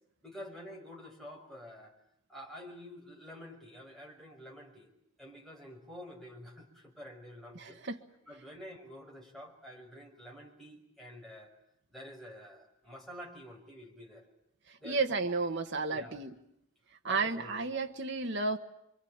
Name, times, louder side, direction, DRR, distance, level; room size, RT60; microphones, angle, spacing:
voice 1, 0.2-1.9 2.3-4.9 5.2-7.8 8.3-11.5 11.9-14.3 14.8-15.2 15.9-16.2 17.0-17.6, equal, ahead, -2 dB, 5.6 m, -49 dB
voice 2, 7.5-8.0 14.7-16.3 17.0-18.6, right 3 dB, 50° right, 5 dB, 1.5 m, -32 dB
27.0 x 24.0 x 8.8 m, 0.79 s
head